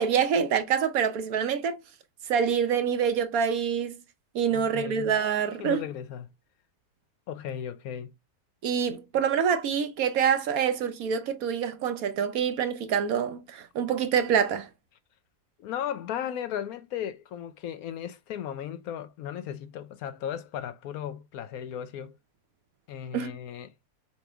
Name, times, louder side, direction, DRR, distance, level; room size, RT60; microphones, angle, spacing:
voice 1, 0.0-1.8 2.3-4.0 4.3-5.8 8.6-14.7 23.1-23.3, right 7 dB, 70° right, 1.0 m, -26 dB
voice 2, 4.5-5.1 5.6-6.3 7.3-8.1 15.6-22.2 22.9-23.7, left 9 dB, 70° left, 0.9 m, -36 dB
4.7 x 3.0 x 3.3 m
omnidirectional pair, 1.7 m